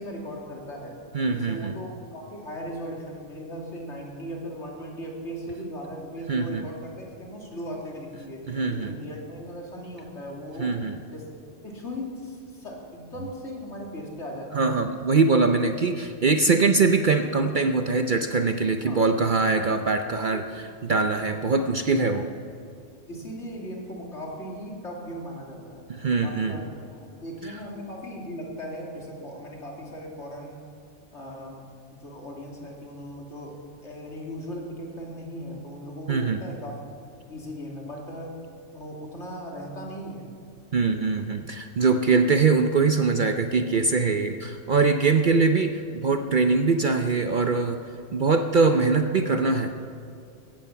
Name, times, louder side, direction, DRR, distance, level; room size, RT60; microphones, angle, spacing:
voice 1, 0.0-1.0 1.3-8.4 8.7-10.8 11.1-11.3 11.6-14.7 18.8-19.0 19.5-19.7 20.3-20.4 23.1-25.8 26.2-30.6 31.1-36.8 37.3-38.4 38.7-40.3 45.2-45.3, equal, 65° left, -1 dB, 3.1 m, -38 dB
voice 2, 1.1-1.7 6.3-6.6 8.5-8.9 10.6-11.0 14.5-22.3 25.9-26.6 36.1-36.4 40.7-47.8 48.1-49.7, right 4 dB, 50° right, 6 dB, 0.7 m, -22 dB
16.5 x 14.5 x 5.8 m, 2.5 s
omnidirectional pair, 1.3 m